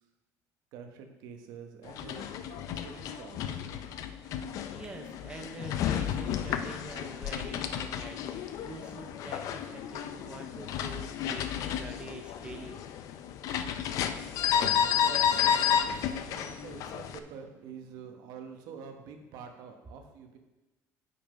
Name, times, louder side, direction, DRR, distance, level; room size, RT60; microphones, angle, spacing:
voice 1, 0.7-4.6 13.8-20.4, right 6 dB, 70° right, 5 dB, 1.1 m, -47 dB
sound 1, 1.9-17.2, left 9 dB, 55° left, 0.5 m, -32 dB
voice 2, 4.7-13.5, right 3 dB, 15° right, 4 dB, 0.6 m, -46 dB
8.6 x 5.6 x 5.2 m, 1.0 s
cardioid pair, 175°, 7 cm